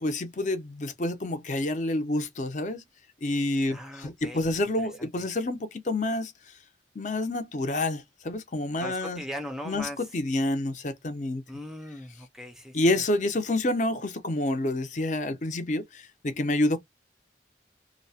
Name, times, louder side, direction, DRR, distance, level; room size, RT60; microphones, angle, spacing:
voice 1, 0.0-2.8 3.2-6.3 7.0-9.2 9.7-11.4 12.7-16.8, left 2 dB, 45° left, 0.6 m, -28 dB
voice 2, 3.7-4.5 5.0-5.1 8.8-10.1 11.5-12.9, equal, 5° right, 0.4 m, -39 dB
2.7 x 2.0 x 2.7 m
head